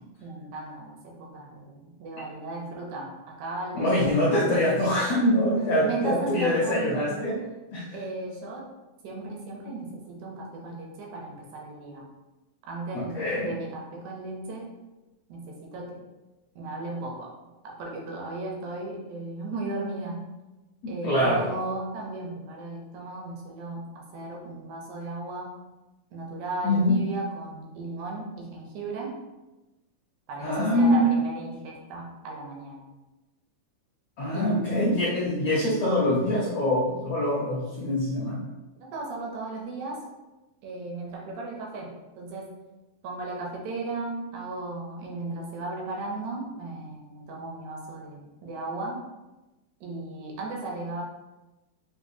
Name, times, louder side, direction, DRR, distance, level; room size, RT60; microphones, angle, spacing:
voice 1, 0.2-4.6 5.6-7.3 7.9-8.7 9.0-12.1 12.6-14.7 15.3-16.0 16.6-17.3 17.6-20.3 20.9-25.6 26.1-29.2 30.3-32.8 34.3-35.1 38.9-40.0 40.6-42.5 43.0-49.0 49.8-51.0, right 2 dB, 70° right, -1 dB, 1.9 m, -36 dB
voice 2, 3.7-7.4 7.7-7.8 12.9-13.5 20.8-21.5 26.6-27.0 30.4-31.1 34.2-38.4, left 1 dB, 80° left, -8 dB, 1.4 m, -24 dB
7.1 x 2.5 x 2.7 m, 1.1 s
omnidirectional pair, 4.2 m